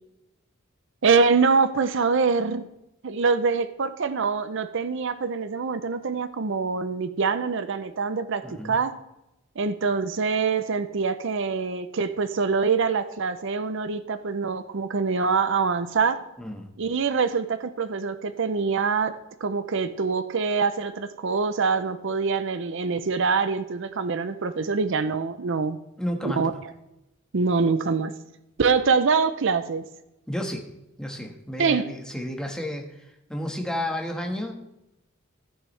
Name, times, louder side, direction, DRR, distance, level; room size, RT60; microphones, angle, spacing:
voice 1, 1.0-2.7 3.0-9.0 9.6-16.2 16.8-19.1 19.4-25.8 26.2-26.5 27.3-28.1 28.6-29.8 31.6-31.9, right 5 dB, 65° right, 11 dB, 0.6 m, -24 dB
voice 2, 8.4-8.8 16.4-16.7 26.0-26.5 30.3-30.7 31.0-34.5, left 1 dB, 5° left, 2 dB, 1.5 m, -32 dB
14.5 x 9.9 x 3.3 m, 0.90 s
head